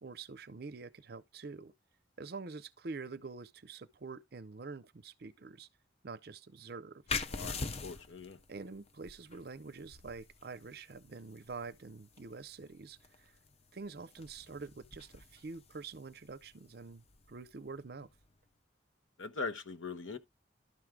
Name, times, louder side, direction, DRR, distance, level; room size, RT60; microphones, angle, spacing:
voice 1, 0.0-1.7 2.2-5.7 6.0-7.0 8.5-13.3 13.7-18.1, right 4 dB, 50° right, 0.5 m, -46 dB
sound 1, 7.1-18.4, left 4 dB, 30° left, 0.6 m, -45 dB
voice 2, 7.3-8.4 19.2-20.2, left 4 dB, 85° left, 1.0 m, -41 dB
12.0 x 4.7 x 3.7 m
head